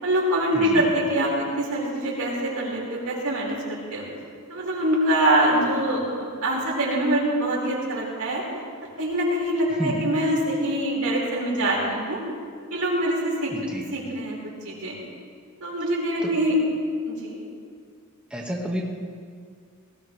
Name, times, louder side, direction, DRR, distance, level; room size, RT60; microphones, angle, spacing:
voice 1, 0.0-4.1 4.5-8.4 9.0-12.2 12.7-13.5 13.9-14.4 14.6-15.0 15.6-16.5 17.1-17.4, right 1 dB, 90° right, -4 dB, 5.3 m, -24 dB
voice 2, 0.5-0.8 9.7-10.1 13.5-13.9 16.2-16.3 18.3-18.8, equal, 5° right, -3 dB, 1.8 m, -30 dB
20.5 x 19.0 x 3.4 m, 2.1 s
head